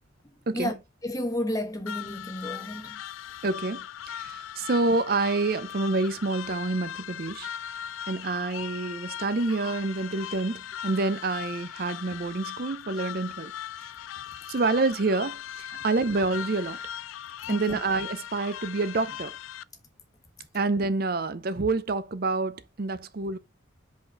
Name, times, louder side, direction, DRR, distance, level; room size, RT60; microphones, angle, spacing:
voice 1, 1.0-3.0 15.7-15.8 17.4-17.8, left 1 dB, 20° left, 1.2 m, -32 dB
sound 1, 1.9-19.6, left 10 dB, 85° left, 0.3 m, -39 dB
voice 2, 3.4-7.5 8.1-13.5 14.5-16.8 17.5-19.3 20.5-23.4, right 3 dB, 50° right, 0.6 m, -28 dB
5.2 x 3.9 x 5.3 m
head